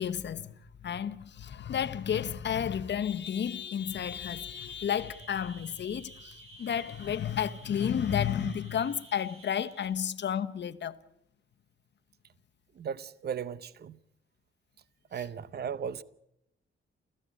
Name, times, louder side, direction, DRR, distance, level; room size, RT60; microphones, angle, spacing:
voice 1, 0.0-11.0 15.2-15.3, left 8 dB, 60° left, 1.0 m, -32 dB
sound 1, 4.4-9.9, right 2 dB, 80° right, 6.0 m, -53 dB
voice 2, 12.8-14.0 15.1-16.0, right 7 dB, 50° right, 0.8 m, -36 dB
29.0 x 15.5 x 8.3 m
wide cardioid pair, 155°, 21 cm